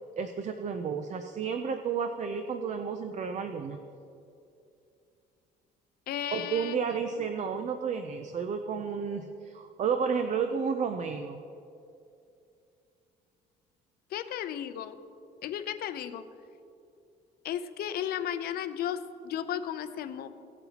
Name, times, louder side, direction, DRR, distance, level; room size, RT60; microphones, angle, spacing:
voice 1, 0.2-3.8 6.3-11.4, right 6 dB, 45° right, 7 dB, 0.6 m, -32 dB
voice 2, 6.1-7.0 14.1-14.9 15.4-16.2 17.4-19.0 19.2-20.3, left 10 dB, 65° left, 11 dB, 0.6 m, -34 dB
17.0 x 7.9 x 2.9 m, 2.7 s
cardioid pair, 110°, 17 cm